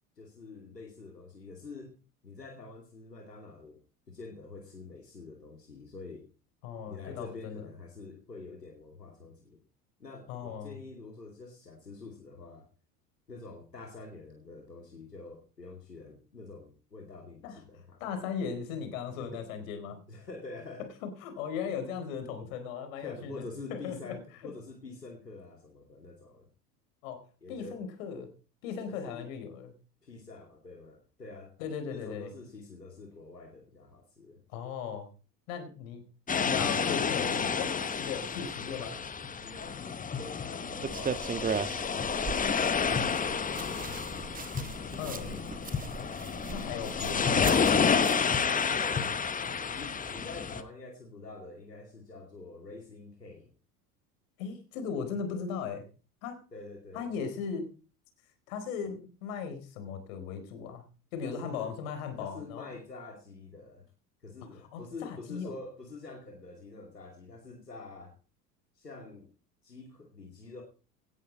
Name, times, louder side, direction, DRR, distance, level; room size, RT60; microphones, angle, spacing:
voice 1, 0.2-2.0 2.2-3.8 4.1-6.2 6.9-9.6 10.0-12.7 13.3-18.1 19.2-19.8 20.1-20.9 23.0-26.5 27.4-27.8 28.9-29.3 30.0-31.6 31.9-34.4 38.6-39.0 39.4-45.7 48.6-49.2 49.7-53.5 56.5-57.1 61.2-61.7 62.1-63.9 64.2-68.2 68.7-69.3 69.6-70.6, left 3 dB, 85° left, 2 dB, 2.6 m, -47 dB
voice 2, 6.6-7.7 10.3-10.8 17.4-17.6 18.0-20.0 21.0-23.4 23.7-24.1 24.4-24.5 27.0-28.3 28.6-29.7 31.6-32.3 34.5-35.1 35.5-36.0 36.3-38.9 45.0-45.4 46.5-47.5 54.4-55.9 56.2-56.4 56.9-57.7 58.5-60.8 61.1-62.7 64.7-65.5, left 6 dB, 60° left, 8 dB, 4.4 m, -37 dB
sound 1, 36.3-50.6, left 6 dB, 15° left, 1.3 m, -30 dB
sound 2, 40.8-48.2, right 6 dB, 15° right, 1.3 m, -38 dB
17.5 x 10.5 x 4.2 m, 0.35 s
figure-of-eight pair, 75°, 47 cm